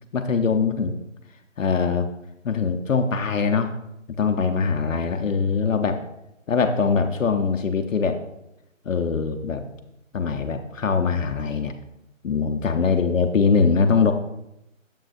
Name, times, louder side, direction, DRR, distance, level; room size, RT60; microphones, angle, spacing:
voice 1, 0.1-1.0 1.6-2.1 2.4-3.7 4.2-6.0 6.5-8.2 8.9-9.7 10.1-11.7 12.2-14.1, left 5 dB, 75° left, 5 dB, 0.7 m, -22 dB
7.6 x 7.3 x 2.5 m, 0.86 s
figure-of-eight pair, 160°, 40 cm